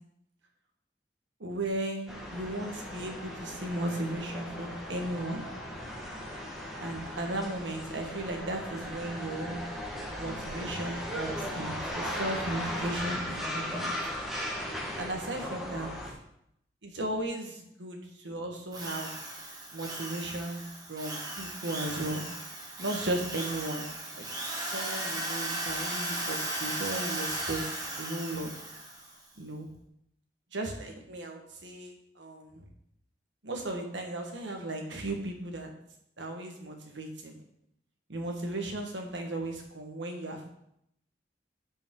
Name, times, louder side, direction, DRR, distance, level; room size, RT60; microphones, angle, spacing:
voice 1, 1.4-5.4 6.8-9.6 10.2-13.9 15.0-15.9 16.8-19.2 19.7-20.6 20.9-22.2 22.8-23.8 24.2-24.3 24.7-27.6 28.0-28.5 29.4-29.7 30.5-32.6 33.4-35.7 36.2-37.4 38.1-40.5, right 1 dB, 85° right, 3 dB, 1.5 m, -36 dB
sound 1, 2.1-16.1, equal, ahead, 1.5 m, -37 dB
sound 2, 2.5-9.1, equal, 75° left, 1.4 m, -51 dB
Drill, 18.7-29.1, right 1 dB, 20° right, 1.3 m, -36 dB
10.5 x 5.3 x 3.8 m, 0.75 s
head